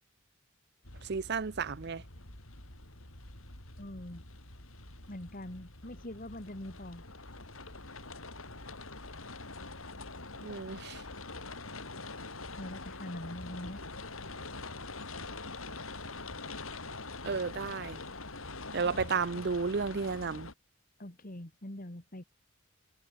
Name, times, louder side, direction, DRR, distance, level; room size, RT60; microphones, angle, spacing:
sound 1, 0.8-20.5, left 3 dB, 80° left, 6.1 m, -44 dB
voice 1, 1.1-2.0 10.4-11.0 17.3-18.0 18.7-20.5, right 5 dB, 55° right, 0.6 m, -33 dB
voice 2, 3.8-4.2 5.1-7.0 12.6-13.8 18.9-19.1 21.0-22.2, left 1 dB, 40° left, 2.4 m, -43 dB
head